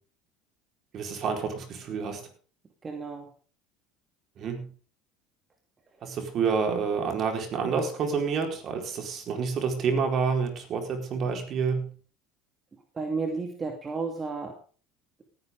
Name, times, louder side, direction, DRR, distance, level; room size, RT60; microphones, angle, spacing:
voice 1, 0.9-2.2 4.4-4.7 6.0-11.9, right 5 dB, 50° right, 4 dB, 4.3 m, -28 dB
voice 2, 2.8-3.3 12.9-14.6, right 4 dB, 25° right, 3 dB, 2.6 m, -32 dB
18.5 x 10.5 x 3.7 m, 0.39 s
supercardioid pair, 90°, 0 cm